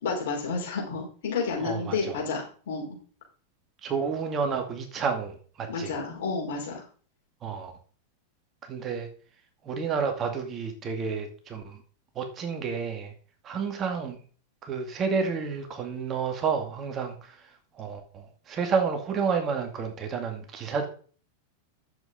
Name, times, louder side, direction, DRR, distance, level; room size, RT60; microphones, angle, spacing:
voice 1, 0.0-3.0 5.7-6.8, left 4 dB, 55° left, 0 dB, 4.9 m, -31 dB
voice 2, 1.6-2.2 3.8-6.0 7.4-7.7 8.6-9.1 9.6-11.8 12.1-13.1 13.4-14.2 14.6-20.9, right 5 dB, 30° right, 5 dB, 2.1 m, -30 dB
10.5 x 7.7 x 3.9 m, 0.41 s
figure-of-eight pair, 90°, 0 cm